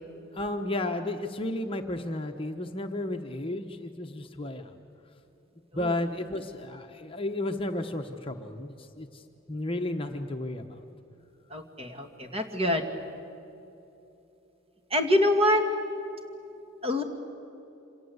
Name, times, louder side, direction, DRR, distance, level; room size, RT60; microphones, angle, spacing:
voice 1, 0.3-4.7 5.7-10.9, left 1 dB, 25° left, 4 dB, 1.0 m, -33 dB
voice 2, 11.5-12.9 14.9-15.7 16.8-17.0, left 1 dB, 30° right, 4 dB, 2.2 m, -25 dB
27.5 x 26.5 x 8.0 m, 2.9 s
head